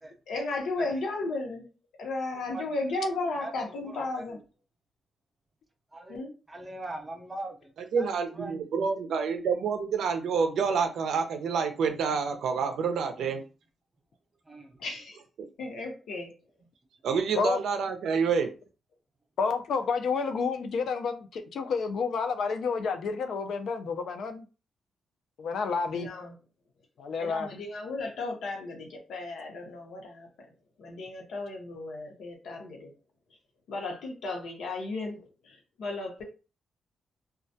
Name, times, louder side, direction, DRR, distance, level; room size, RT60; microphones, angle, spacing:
voice 1, 0.3-1.7 2.0-4.4 6.1-6.3 14.8-15.2 15.6-16.3 25.9-26.4 27.2-30.3 30.8-32.9 33.7-35.2 35.4-36.2, left 2 dB, 90° left, 0.8 m, -34 dB
voice 2, 2.3-2.7 3.3-4.4 5.9-6.2 6.5-8.1 8.4-8.5 14.5-14.8, right 2 dB, 15° right, 0.5 m, -41 dB
voice 3, 7.9-13.4 17.0-18.5, right 5 dB, 80° right, 0.5 m, -28 dB
voice 4, 19.4-24.5 25.4-26.1 27.0-27.5, left 5 dB, 65° left, 0.4 m, -30 dB
2.3 x 2.1 x 2.6 m
wide cardioid pair, 150°, 0 cm